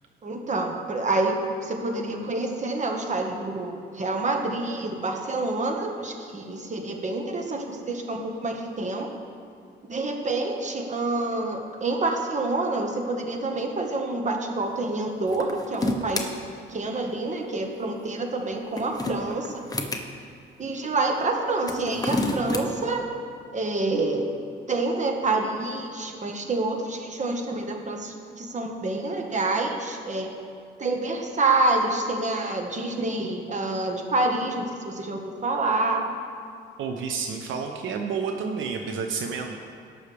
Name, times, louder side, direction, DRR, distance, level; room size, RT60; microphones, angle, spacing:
voice 1, 0.2-9.1 9.9-16.3 16.7-19.5 20.6-23.0 23.5-24.3 24.7-30.3 30.8-36.0, right 2 dB, 35° right, 2 dB, 1.5 m, -27 dB
sound 1, 15.3-16.3 18.5-20.0 21.6-22.6, left 2 dB, 20° left, 1.1 m, -29 dB
voice 2, 36.8-39.6, right 5 dB, 80° right, 3 dB, 0.9 m, -30 dB
18.5 x 6.4 x 3.5 m, 2.3 s
cardioid pair, 90°, 20 cm